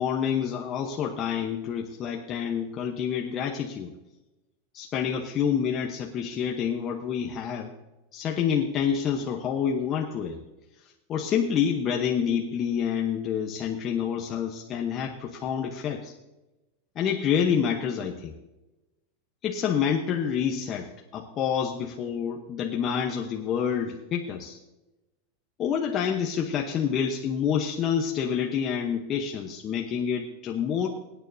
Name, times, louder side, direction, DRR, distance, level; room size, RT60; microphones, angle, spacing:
voice 1, 0.0-3.9 4.7-7.7 8.1-10.4 11.1-16.1 17.0-18.3 19.4-24.6 25.6-30.9, left 7 dB, 30° left, 1 dB, 1.0 m, -28 dB
23.5 x 9.2 x 2.7 m, 1.0 s
supercardioid pair, 150°, 0 cm